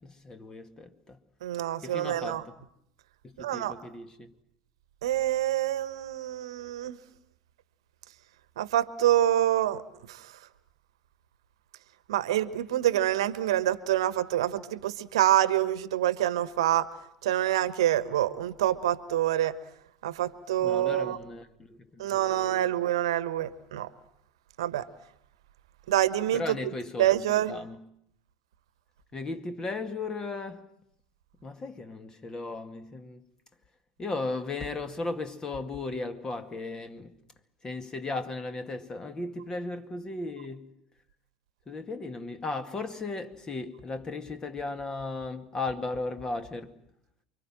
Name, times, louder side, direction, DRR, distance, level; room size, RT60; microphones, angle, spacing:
voice 1, 0.0-1.2 1.8-2.5 3.2-4.3 20.6-22.6 26.3-27.1 27.5-27.8 29.1-30.7 31.4-33.3 34.0-37.2 37.6-40.7 41.7-46.8, left 3 dB, 25° left, 2.2 m, -36 dB
voice 2, 1.4-2.4 3.4-3.8 5.0-7.0 8.6-9.8 10.1-10.2 12.1-16.9 17.2-19.5 20.0-21.2 22.0-23.9 24.6-24.9 25.9-26.4 27.0-27.5, right 12 dB, 70° right, 1.2 m, -26 dB
29.0 x 24.5 x 7.6 m
figure-of-eight pair, 75°, 3 cm